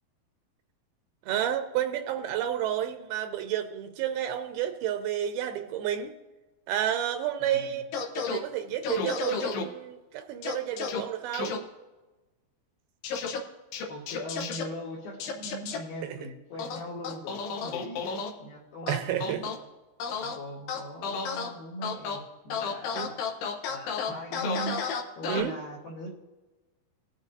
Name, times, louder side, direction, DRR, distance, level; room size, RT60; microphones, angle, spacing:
voice 1, 1.3-6.1 6.7-7.8 8.2-11.6 16.0-16.2 18.9-19.4 23.0-23.1 25.3-25.6, right 10 dB, 85° right, 7 dB, 2.4 m, -30 dB
voice 2, 7.4-7.8 13.9-19.5 20.2-24.8 25.2-26.1, right 1 dB, 70° left, -4 dB, 3.1 m, -40 dB
sound 1, 7.9-8.4 8.8-9.6 10.4-11.0 11.3-11.6 13.0-13.4 13.7-14.6 15.2-15.8 16.6-18.3 18.9-19.6 20.0-20.3 20.7-21.5 21.8-22.2 22.5-25.4, left 6 dB, 85° left, 3.2 m, -32 dB
19.5 x 7.3 x 2.7 m, 1.1 s
omnidirectional pair, 4.6 m